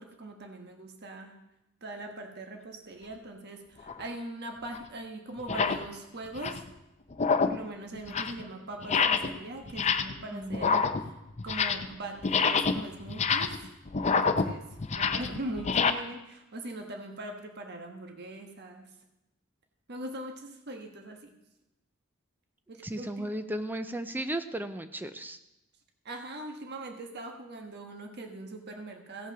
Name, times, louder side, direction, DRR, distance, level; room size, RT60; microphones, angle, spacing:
voice 1, 0.0-1.4 1.8-6.7 7.4-11.1 11.4-13.7 14.1-18.8 19.9-21.3 22.7-23.3 26.0-29.3, right 1 dB, 55° right, 4 dB, 1.3 m, -41 dB
sound 1, 3.8-4.0 4.7-4.8 5.4-5.9 6.2-6.7 7.1-7.7 8.0-8.4 8.8-9.4 9.7-10.2 10.5-11.9 12.2-15.9, left 5 dB, 35° left, 0.6 m, -27 dB
voice 2, 10.3-10.8 22.8-25.4, right 1 dB, 10° right, 10 dB, 0.4 m, -35 dB
16.0 x 5.6 x 6.0 m, 0.92 s
head